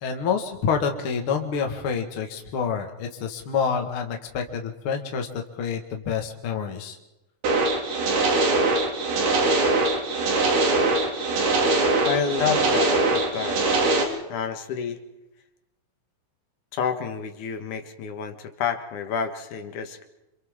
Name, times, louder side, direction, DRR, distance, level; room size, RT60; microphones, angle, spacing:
voice 1, 0.0-5.3 5.6-7.0, left 6 dB, 50° left, 3 dB, 2.2 m, -27 dB
sound 1, 7.4-14.0, right 2 dB, 80° right, 4.1 m, -22 dB
voice 2, 12.1-15.0 16.7-20.0, left 7 dB, 75° left, 7 dB, 2.9 m, -29 dB
28.5 x 27.0 x 3.7 m, 0.97 s
omnidirectional pair, 3.6 m